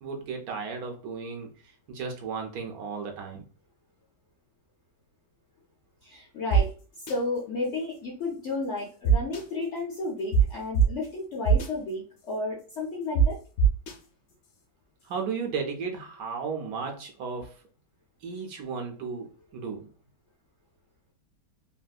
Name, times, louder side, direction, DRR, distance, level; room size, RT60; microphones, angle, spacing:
voice 1, 0.0-3.4 15.0-17.6 18.2-19.9, right 5 dB, 70° right, 3 dB, 1.0 m, -35 dB
voice 2, 6.0-6.7 7.1-13.4, left 2 dB, 65° left, -2 dB, 0.7 m, -32 dB
sound 1, 6.5-6.6 7.1-7.2 9.0-9.4 10.3-10.4 10.7-10.8 11.5-11.7 13.2-13.3 13.6-13.9, right 6 dB, 80° left, 1.4 m, -20 dB
3.4 x 2.5 x 2.2 m, 0.40 s
omnidirectional pair, 1.8 m